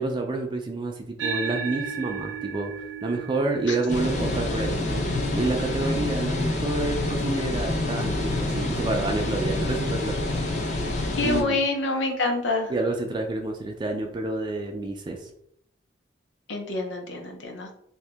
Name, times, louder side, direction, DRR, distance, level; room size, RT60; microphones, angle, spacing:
voice 1, 0.0-10.2 10.6-10.7 11.2-11.6 12.7-15.3, right 2 dB, 25° right, 2 dB, 0.3 m, -29 dB
sound 1, 1.2-9.9, right 6 dB, 85° right, 0.5 m, -38 dB
sound 2, 3.9-11.4, left 2 dB, 40° left, 0.5 m, -27 dB
voice 2, 11.2-12.7 16.5-17.7, left 3 dB, 75° left, 3 dB, 0.7 m, -26 dB
2.8 x 2.7 x 3.3 m, 0.72 s
head